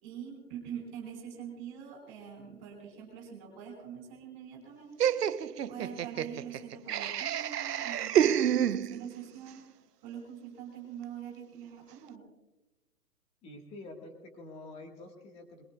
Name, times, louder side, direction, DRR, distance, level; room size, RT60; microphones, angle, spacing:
voice 1, 0.0-5.2 5.7-9.6 10.0-12.3, right 8 dB, 30° right, 1 dB, 4.2 m, -44 dB
Laughter, 5.0-9.2, right 10 dB, 85° right, 0.8 m, -29 dB
voice 2, 13.4-15.6, left 2 dB, 15° left, 3 dB, 1.5 m, -47 dB
21.5 x 21.5 x 2.3 m, 1.0 s
hypercardioid pair, 155°, 46 cm